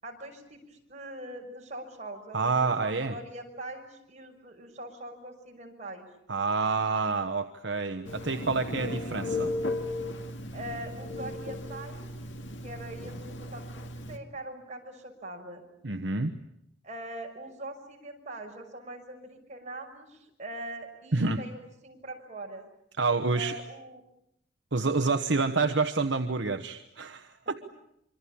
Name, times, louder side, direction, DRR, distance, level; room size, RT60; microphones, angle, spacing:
voice 1, 0.0-6.1 10.5-12.1 12.6-15.6 16.8-22.6 23.3-24.0 25.0-25.1, right 1 dB, 40° right, 2 dB, 6.2 m, -42 dB
voice 2, 2.3-3.1 6.3-9.5 15.8-16.3 21.1-21.4 23.0-23.5 24.7-27.6, right 3 dB, 65° right, 7 dB, 1.2 m, -28 dB
Telephone, 8.0-14.2, left 2 dB, 70° left, 2.2 m, -36 dB
26.0 x 25.0 x 8.7 m, 0.79 s
head